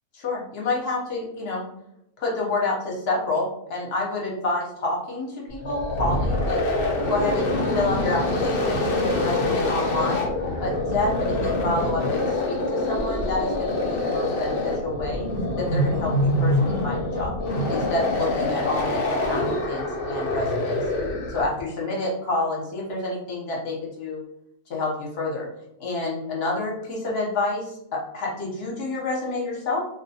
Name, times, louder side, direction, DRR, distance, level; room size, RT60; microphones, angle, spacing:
voice 1, 0.1-1.6 2.2-6.6 7.1-7.5 7.7-10.3 10.6-15.3 15.6-17.3 17.7-20.8 21.3-24.2 24.7-25.5 25.8-29.8, left 2 dB, 55° left, -2 dB, 0.8 m, -28 dB
sound 1, 5.5-21.6, left 1 dB, 75° left, 0.5 m, -25 dB
2.3 x 2.2 x 2.6 m, 0.80 s
omnidirectional pair, 1.6 m